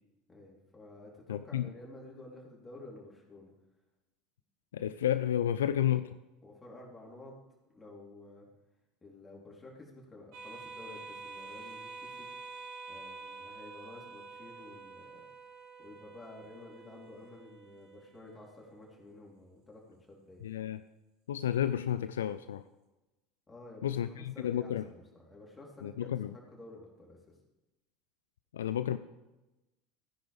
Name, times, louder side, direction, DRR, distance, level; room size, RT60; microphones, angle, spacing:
voice 1, 0.3-3.5 6.4-7.3 7.7-8.5 9.0-12.3 12.9-15.2 15.8-20.5 23.5-27.2, left 2 dB, 15° left, -3 dB, 3.8 m, -51 dB
voice 2, 1.3-1.7 4.7-6.2 20.4-20.8 21.3-22.6 23.8-24.8 25.8-26.4 28.5-29.0, left 10 dB, 70° left, 13 dB, 0.3 m, -31 dB
sound 1, 10.3-19.3, right 4 dB, 55° right, 2.1 m, -48 dB
16.5 x 9.9 x 3.6 m, 1.0 s
figure-of-eight pair, 70°, 0 cm